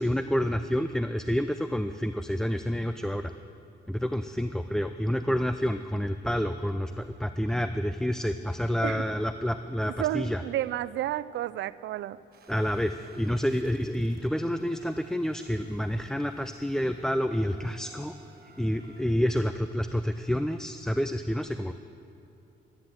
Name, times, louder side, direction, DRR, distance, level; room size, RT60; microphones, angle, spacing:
voice 1, 0.0-3.3 3.9-10.4 12.5-18.2 18.6-21.7, equal, 5° left, 9 dB, 0.4 m, -28 dB
voice 2, 10.0-12.2, right 13 dB, 70° right, 18 dB, 0.4 m, -31 dB
sound 1, 12.3-19.0, right 4 dB, 50° right, 1.4 m, -56 dB
12.0 x 9.8 x 7.5 m, 3.0 s
cardioid pair, 90°, 20 cm